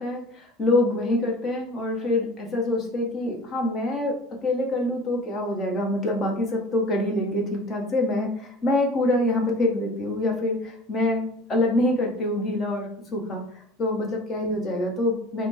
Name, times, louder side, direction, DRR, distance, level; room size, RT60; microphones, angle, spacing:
voice 1, 0.0-13.4 13.8-15.5, left 1 dB, 25° left, 0 dB, 1.0 m, -25 dB
4.2 x 2.1 x 4.2 m, 0.63 s
supercardioid pair, 145°, 0 cm